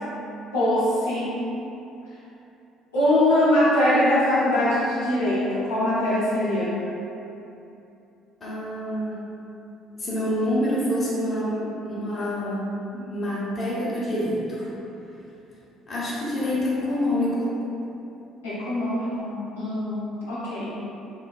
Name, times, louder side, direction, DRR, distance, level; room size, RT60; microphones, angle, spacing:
voice 1, 0.5-1.4 2.9-6.8 18.4-20.8, left 1 dB, 85° left, -12 dB, 0.6 m, -22 dB
voice 2, 8.4-9.2 10.0-12.6 12.9-14.7 15.9-17.5, left 1 dB, 35° left, -7 dB, 0.8 m, -27 dB
3.1 x 2.2 x 2.3 m, 2.9 s
hypercardioid pair, 55°, 0 cm